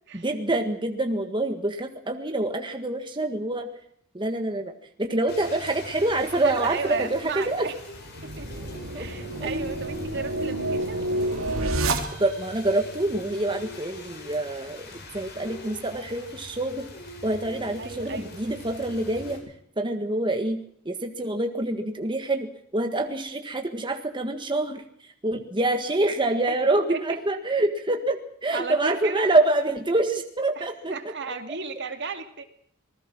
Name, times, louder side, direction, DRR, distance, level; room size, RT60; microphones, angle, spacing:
voice 1, 0.1-3.7 4.1-4.7 5.0-7.7 8.9-9.1 9.4-9.5 12.2-14.9 15.1-16.8 17.2-19.4 19.8-24.8 25.2-31.0, right 2 dB, 25° right, 5 dB, 1.7 m, -26 dB
Rain, 5.3-19.4, left 2 dB, 55° left, 7.7 m, -42 dB
voice 2, 6.4-7.7 8.2-8.5 8.9-11.0 17.8-18.3 26.9-27.0 28.5-29.3 30.6-30.7 30.9-32.4, right 4 dB, 60° right, 7 dB, 2.6 m, -34 dB
sound 1, 8.0-12.6, right 1 dB, 85° right, 3.3 m, -29 dB
26.5 x 20.5 x 6.2 m, 0.68 s
head